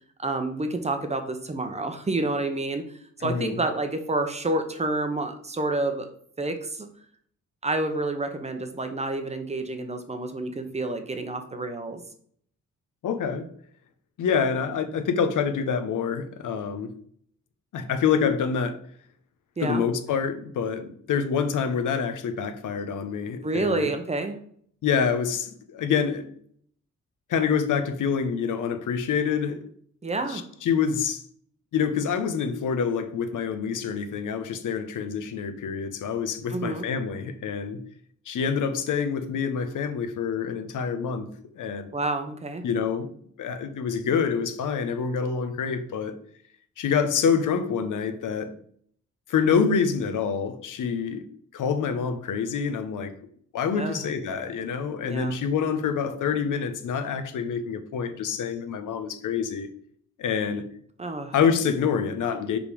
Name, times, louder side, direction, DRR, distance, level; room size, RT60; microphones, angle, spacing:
voice 1, 0.2-2.8 3.2-6.1 6.4-6.9 7.6-12.0 19.6-19.8 23.4-24.4 30.0-30.4 36.5-36.9 41.9-42.6 53.8-54.0 55.0-55.3 61.0-61.3, right 2 dB, 20° right, 0.8 m, -29 dB
voice 2, 3.2-3.6 13.0-13.5 14.2-16.9 17.7-18.8 19.6-23.9 24.8-26.3 27.3-29.7 30.3-31.2 31.7-37.8 38.3-41.3 41.5-41.9 42.6-43.1 43.4-46.2 46.8-48.5 49.3-51.2 51.5-53.1 53.5-59.7 60.2-60.7 61.3-62.6, left 6 dB, 80° left, 0.9 m, -26 dB
5.2 x 5.1 x 4.9 m
wide cardioid pair, 155°, 31 cm